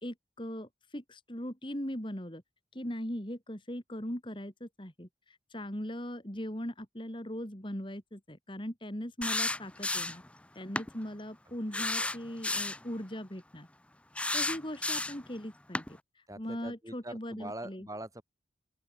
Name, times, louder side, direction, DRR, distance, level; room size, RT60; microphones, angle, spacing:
voice 1, 0.0-2.4 2.7-10.2 10.5-13.7 14.3-17.9, equal, 25° left, 3.1 m, -40 dB
sound 1, 9.2-10.3 10.8-10.9 11.7-12.8 14.2-15.3 15.8-15.9, left 2 dB, 5° left, 0.7 m, -32 dB
voice 2, 11.5-12.1 16.3-18.2, right 1 dB, 20° right, 6.4 m, -44 dB
open air
head